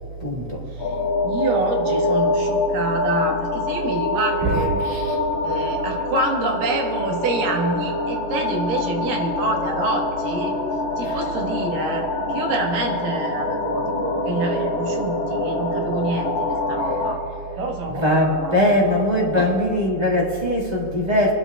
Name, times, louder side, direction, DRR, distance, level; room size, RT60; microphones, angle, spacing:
voice 1, 0.2-0.6 4.8-5.2 11.0-11.2 17.9-21.3, left 1 dB, 30° right, -4 dB, 0.8 m, -21 dB
sound 1, 0.8-17.1, left 2 dB, 55° left, 2.6 m, -25 dB
voice 2, 1.2-4.8 5.4-10.5 11.0-17.2 17.6-18.6 19.4-19.5, right 2 dB, 90° right, 1 dB, 3.1 m, -27 dB
28.0 x 11.5 x 2.3 m, 2.9 s
omnidirectional pair, 3.8 m